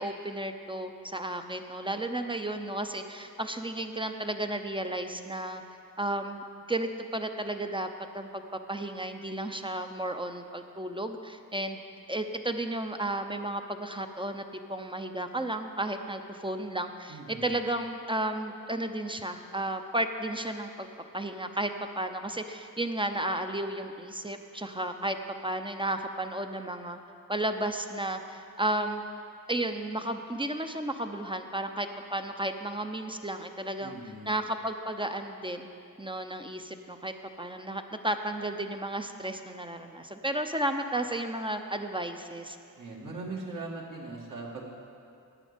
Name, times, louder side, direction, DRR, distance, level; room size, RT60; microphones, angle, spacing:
voice 1, 0.0-5.6 6.0-7.9 8.1-8.4 8.7-11.8 12.1-14.4 14.7-20.9 21.1-25.2 25.4-27.0 27.3-29.0 29.5-33.9 34.3-35.7 36.0-42.6, right 1 dB, 15° right, 6 dB, 0.6 m, -33 dB
voice 2, 17.1-17.5 33.8-34.4 42.8-44.7, right 3 dB, 65° right, -2 dB, 2.1 m, -40 dB
11.5 x 8.5 x 5.1 m, 2.5 s
cardioid pair, 65°, 34 cm